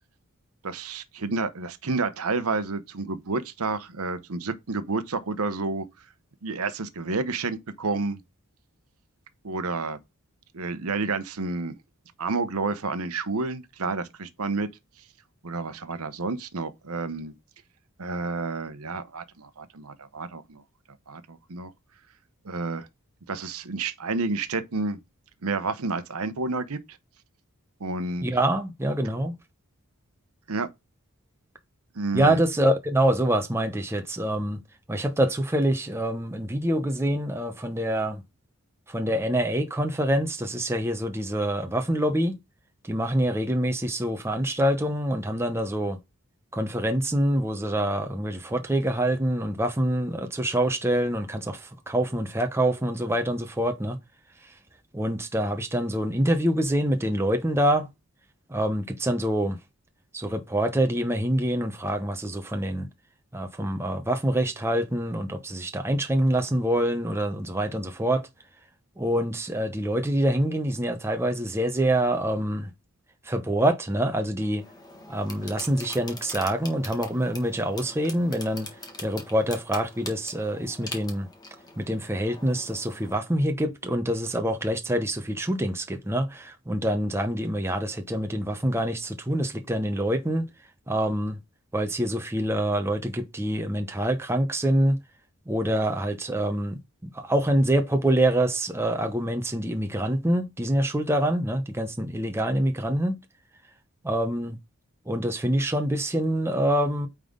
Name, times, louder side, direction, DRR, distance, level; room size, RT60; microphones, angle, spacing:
voice 1, 0.6-5.9 6.4-8.2 9.4-10.0 10.5-11.8 12.2-14.7 15.4-17.3 18.0-20.6 21.1-21.7 22.4-22.9 23.3-25.0 25.4-26.8 27.8-28.3 30.5-30.7 31.9-32.4, right 3 dB, 80° right, 0.9 m, -30 dB
voice 2, 28.2-29.3 32.1-34.6 34.9-38.2 38.9-42.4 42.8-46.0 46.5-54.0 54.9-57.9 58.5-59.6 60.1-62.9 63.3-68.3 69.0-72.7 73.2-74.6 75.1-78.7 79.0-81.3 81.8-90.5 90.9-91.4 91.7-95.0 95.5-103.2 104.0-104.6 105.1-107.1, right 1 dB, 10° right, 0.8 m, -26 dB
sound 1, 74.6-83.2, left 2 dB, 15° left, 1.4 m, -43 dB
9.0 x 3.7 x 3.7 m
head